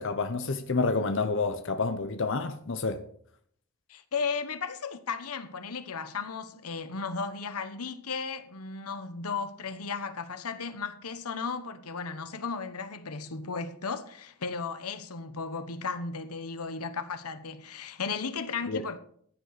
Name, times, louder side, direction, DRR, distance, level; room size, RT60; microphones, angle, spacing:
voice 1, 0.0-3.0 18.7-18.8, left 3 dB, 55° left, 0.8 m, -29 dB
voice 2, 3.9-19.0, left 5 dB, 90° left, 1.1 m, -35 dB
14.5 x 9.4 x 4.1 m
head